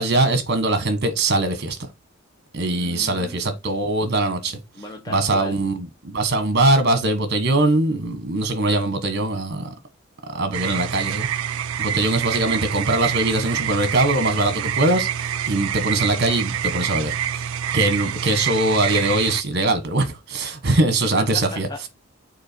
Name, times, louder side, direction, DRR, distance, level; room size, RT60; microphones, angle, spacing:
voice 1, 0.0-1.8 2.5-4.6 5.1-9.7 10.3-11.3 11.8-17.4 17.7-21.7, right 2 dB, 55° right, 1.3 m, -22 dB
voice 2, 2.7-3.4 4.7-5.6 21.3-21.9, left 2 dB, 20° left, 1.0 m, -37 dB
sound 1, 10.5-19.4, right 9 dB, 70° right, 0.4 m, -26 dB
6.5 x 4.2 x 4.4 m
head